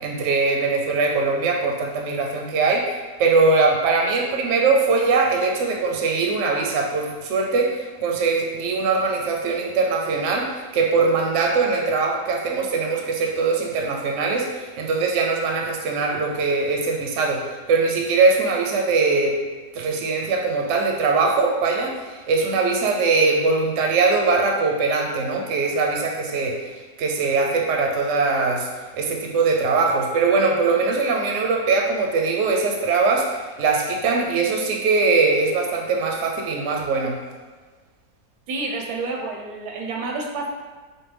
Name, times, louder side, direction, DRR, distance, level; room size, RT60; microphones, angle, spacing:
voice 1, 0.0-19.3 19.7-26.5 27.0-28.7 28.9-37.2, right 4 dB, 65° right, 0 dB, 0.8 m, -21 dB
voice 2, 38.5-40.5, right 3 dB, 85° right, 1 dB, 1.1 m, -29 dB
4.6 x 2.2 x 3.2 m, 1.4 s
omnidirectional pair, 1.7 m